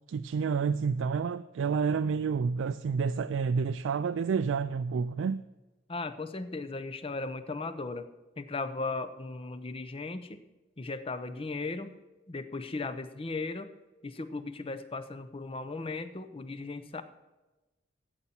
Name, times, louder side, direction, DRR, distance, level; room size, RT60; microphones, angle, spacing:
voice 1, 0.1-5.4, right 5 dB, 90° right, 0.3 m, -29 dB
voice 2, 5.9-8.1 8.4-10.4 10.8-11.9 12.3-13.7 14.0-17.0, left 3 dB, 30° left, 0.6 m, -37 dB
14.0 x 8.2 x 4.3 m
head